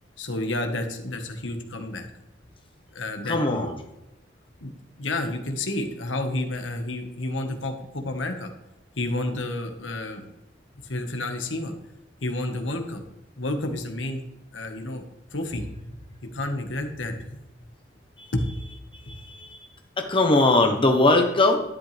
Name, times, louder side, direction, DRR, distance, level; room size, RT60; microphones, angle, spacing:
voice 1, 0.2-2.1 2.9-3.7 4.6-4.7 5.0-8.5 9.0-10.2 10.8-11.7 12.2-13.0 13.4-14.2 14.5-15.0 15.3-16.0 16.3-17.4 18.3-18.4, left 2 dB, 80° left, 4 dB, 1.6 m, -30 dB
voice 2, 3.2-3.7 18.2-18.3 18.9-19.7 20.0-21.6, left 2 dB, 30° left, 3 dB, 1.2 m, -21 dB
12.0 x 10.5 x 3.5 m, 0.91 s
head